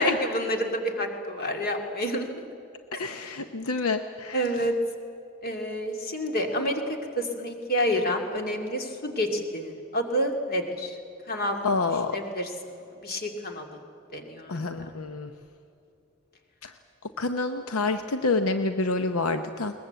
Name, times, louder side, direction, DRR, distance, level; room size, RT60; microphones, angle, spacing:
voice 1, 0.0-2.3 2.9-3.3 4.3-4.7 5.4-6.8 7.2-11.0 11.3-11.6 12.1-12.5 13.0-13.7 14.1-14.9, equal, 45° left, 4 dB, 2.5 m, -29 dB
voice 2, 3.0-4.4 11.6-12.2 14.5-15.3 16.6-16.7 17.2-19.7, left 3 dB, 80° left, 8 dB, 0.8 m, -27 dB
21.5 x 20.0 x 8.1 m, 2.6 s
head